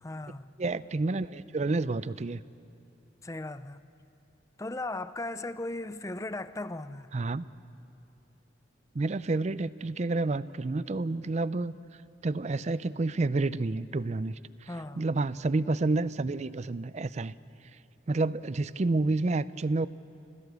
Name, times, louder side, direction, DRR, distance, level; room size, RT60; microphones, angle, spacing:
voice 1, 0.0-0.5 3.2-3.9 4.6-7.1 14.7-15.0, left 2 dB, 15° left, 0.5 m, -37 dB
voice 2, 0.6-2.4 7.1-7.4 8.9-11.7 12.2-17.3 18.1-19.9, right 3 dB, 35° right, 0.4 m, -29 dB
28.5 x 17.0 x 8.1 m
head